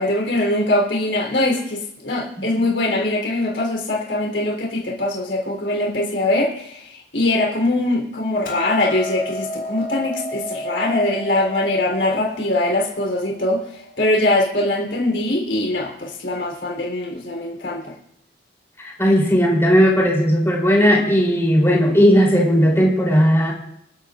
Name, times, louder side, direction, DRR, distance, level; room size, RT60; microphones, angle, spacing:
voice 1, 0.0-13.6 14.0-17.9, left 1 dB, 70° left, -1 dB, 3.6 m, -22 dB
Hammer, 8.5-14.7, left 1 dB, 55° left, 5.0 m, -32 dB
voice 2, 18.8-23.5, equal, 15° left, -3 dB, 3.5 m, -16 dB
24.5 x 12.0 x 2.5 m, 0.75 s
head